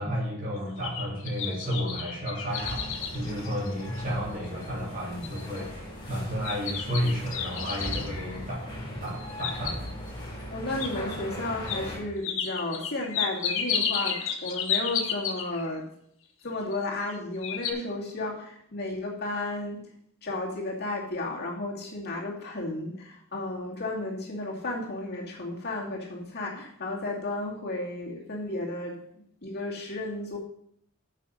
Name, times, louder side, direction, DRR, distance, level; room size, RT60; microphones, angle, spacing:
voice 1, 0.0-8.6 9.0-9.8, equal, 40° right, -7 dB, 3.7 m, -32 dB
sound 1, 0.6-4.1 4.6-4.7 5.2-5.6 6.4-8.1 9.1-10.1 10.8-10.9 11.7-11.8 12.2-15.7 16.7-17.2 17.4-17.7, left 7 dB, 70° left, 1.4 m, -32 dB
sound 2, 2.5-12.0, equal, 25° left, 3.8 m, -39 dB
voice 2, 10.5-15.9 16.4-19.8 20.2-29.0 29.4-30.4, left 2 dB, 50° left, -2 dB, 2.6 m, -33 dB
9.5 x 6.7 x 5.2 m, 0.69 s
head